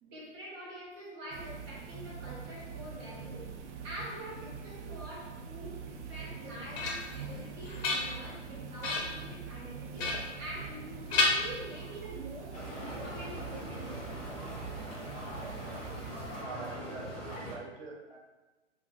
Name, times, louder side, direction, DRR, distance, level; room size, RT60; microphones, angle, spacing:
voice 1, 0.0-3.5 3.8-14.5, right 1 dB, 20° right, -5 dB, 0.5 m, -46 dB
sound 1, 1.3-16.4, right 5 dB, 75° right, 0.5 m, -44 dB
sound 2, 6.2-7.2 7.6-8.4 8.8-9.2 10.0-10.8 11.1-12.1, left 3 dB, 55° left, 0.8 m, -32 dB
sound 3, 12.5-17.6, equal, 15° left, 0.7 m, -41 dB
voice 2, 16.3-18.2, right 3 dB, 60° right, -1 dB, 0.9 m, -45 dB
2.6 x 2.1 x 3.3 m, 1.1 s
hypercardioid pair, 145°, 36 cm